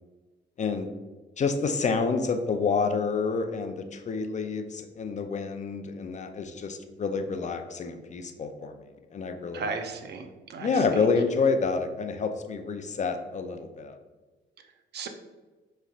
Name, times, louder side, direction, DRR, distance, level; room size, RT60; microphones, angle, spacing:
voice 1, 0.6-0.9 1.4-8.8 9.1-9.7 10.6-14.0, left 4 dB, 35° left, 7 dB, 0.5 m, -28 dB
voice 2, 9.5-11.0 14.9-15.1, right 4 dB, 55° right, 6 dB, 0.6 m, -35 dB
5.1 x 3.2 x 2.4 m, 1.2 s
cardioid pair, 90°, 20 cm